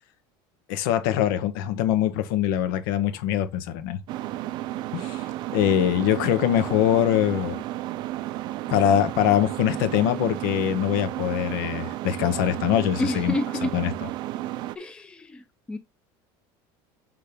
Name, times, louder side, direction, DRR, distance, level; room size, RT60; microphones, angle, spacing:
voice 1, 0.7-4.0 4.9-5.2 5.5-7.6 8.7-13.3 13.7-13.9, left 11 dB, 75° left, 1.3 m, -23 dB
sound 1, 4.1-14.8, right 15 dB, 40° right, 0.5 m, -32 dB
voice 2, 13.0-13.7 14.8-15.8, left 1 dB, 10° left, 0.7 m, -29 dB
6.4 x 3.8 x 5.2 m
cardioid pair, 170°, 11 cm